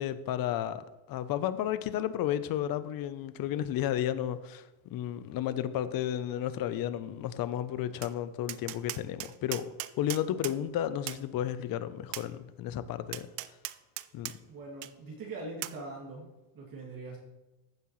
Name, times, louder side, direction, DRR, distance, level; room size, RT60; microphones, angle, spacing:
voice 1, 0.0-4.6 4.9-9.7 10.0-13.3 14.1-14.3, left 11 dB, 50° left, 0.7 m, -32 dB
Tap, 8.0-8.1 8.5-10.6 11.1-11.2 12.1-12.3 13.1-14.4 14.8-14.9 15.6-15.8, right 17 dB, 65° right, 0.6 m, -38 dB
voice 2, 14.5-17.2, right 2 dB, 45° right, 2.6 m, -42 dB
14.5 x 7.4 x 3.2 m
cardioid pair, 130°, 47 cm